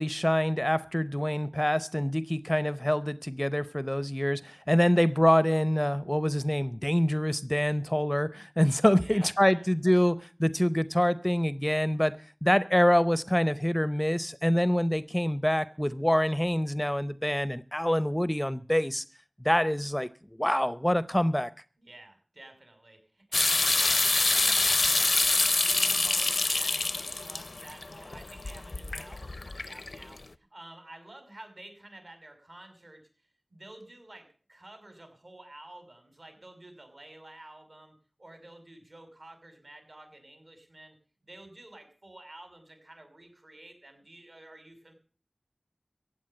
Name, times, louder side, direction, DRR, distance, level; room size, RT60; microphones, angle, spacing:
voice 1, 0.0-19.0 19.4-20.1 20.4-21.5, equal, 10° left, 0.7 m, -26 dB
voice 2, 9.0-9.7 21.8-41.0 41.2-44.9, right 1 dB, 60° right, 6.1 m, -50 dB
sound 1, 23.3-30.2, left 2 dB, 85° left, 0.7 m, -26 dB
15.5 x 9.0 x 8.8 m
wide cardioid pair, 55°, 0 cm